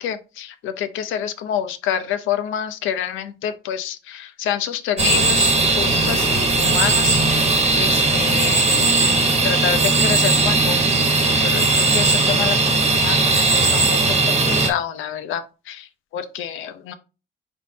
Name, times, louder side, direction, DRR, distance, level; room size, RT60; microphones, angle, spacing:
voice 1, 0.0-11.1 11.4-14.0 14.3-15.9 16.1-16.9, left 9 dB, 90° left, 11 dB, 0.6 m, -28 dB
sound 1, 5.0-14.7, right 3 dB, 30° right, 1.1 m, -18 dB
4.1 x 3.6 x 2.8 m, 0.31 s
cardioid pair, 90°, 20 cm